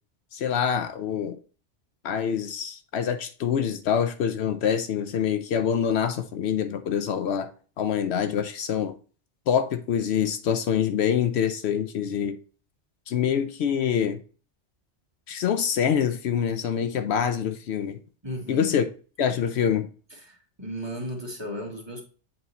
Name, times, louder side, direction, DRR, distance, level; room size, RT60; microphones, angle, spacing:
voice 1, 0.3-1.4 2.0-7.5 7.8-9.0 9.5-12.4 13.1-14.2 15.3-18.0 18.5-18.8 19.2-19.9, left 8 dB, 70° left, 0.8 m, -25 dB
voice 2, 18.2-18.8 20.1-22.0, equal, 25° right, 1.4 m, -35 dB
7.8 x 3.0 x 4.0 m
omnidirectional pair, 1.2 m